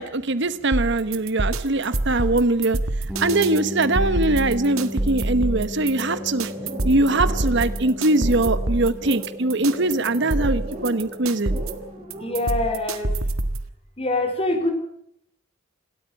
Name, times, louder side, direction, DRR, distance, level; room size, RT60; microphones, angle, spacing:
voice 1, 0.0-2.8 3.2-6.5 6.8-11.6, right 2 dB, 60° right, 13 dB, 1.2 m, -22 dB
sound 1, 0.7-13.7, right 2 dB, 85° right, 1.6 m, -27 dB
sound 2, 3.1-12.8, left 1 dB, 5° right, 6.3 m, -36 dB
sound 3, 4.7-12.3, right 1 dB, 35° right, 6.1 m, -37 dB
voice 2, 12.2-13.1 14.0-14.7, left 2 dB, 30° left, 6 dB, 4.3 m, -24 dB
27.5 x 13.5 x 8.5 m, 0.74 s
head